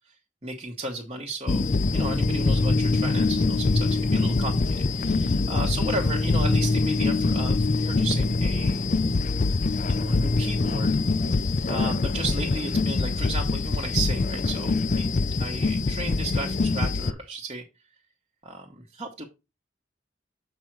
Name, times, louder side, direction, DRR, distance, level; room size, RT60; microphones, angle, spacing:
voice 1, 0.4-8.9 9.9-10.9 11.2-15.1 15.4-17.6 18.4-19.2, right 2 dB, 30° right, -1 dB, 1.1 m, -34 dB
sound 1, 1.5-17.1, left 3 dB, 40° left, 0.4 m, -24 dB
7.6 x 5.4 x 4.6 m, 0.27 s
head